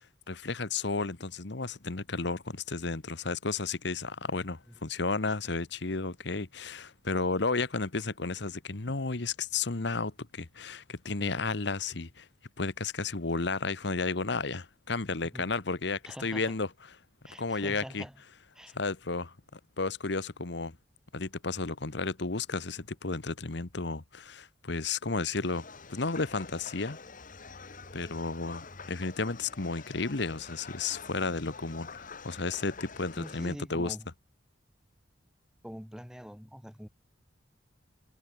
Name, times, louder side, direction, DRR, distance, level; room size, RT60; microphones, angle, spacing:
voice 1, 0.3-12.3 12.6-16.7 17.4-18.0 18.7-20.8 21.1-27.0 27.9-33.9, left 3 dB, 65° left, 1.3 m, -33 dB
voice 2, 16.0-16.6 17.2-18.2 18.5-18.8 33.2-34.1 35.6-36.9, equal, 5° right, 2.9 m, -44 dB
sound 1, 25.4-33.5, left 4 dB, 45° left, 2.1 m, -47 dB
head